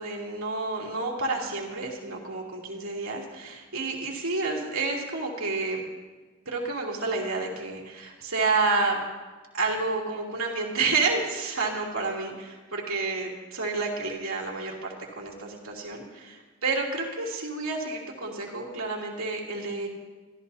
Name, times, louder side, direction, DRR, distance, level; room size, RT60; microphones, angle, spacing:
voice 1, 0.0-5.8 6.4-9.0 9.5-19.9, right 3 dB, 90° right, -2 dB, 2.9 m, -30 dB
24.5 x 14.0 x 2.8 m, 1.3 s
head